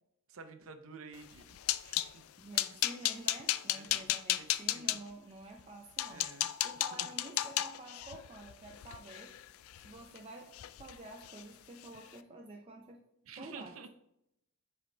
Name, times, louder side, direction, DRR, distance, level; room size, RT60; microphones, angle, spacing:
voice 1, 0.3-1.6 1.8-2.3 2.5-2.8 3.7-4.5 4.7-5.0 6.1-7.1 13.2-13.9, right 4 dB, 80° right, 8 dB, 0.7 m, -51 dB
sound 1, 1.2-2.1 2.5-5.0 5.6-5.7 6.0-10.2 10.5-10.9 11.2-11.4 11.8-12.0, left 14 dB, 90° left, 0.3 m, -34 dB
voice 2, 2.4-9.4 9.8-10.5 10.8-13.0 13.4-13.9, right 2 dB, 30° right, 1 dB, 0.6 m, -50 dB
7.5 x 4.7 x 3.3 m, 0.81 s
head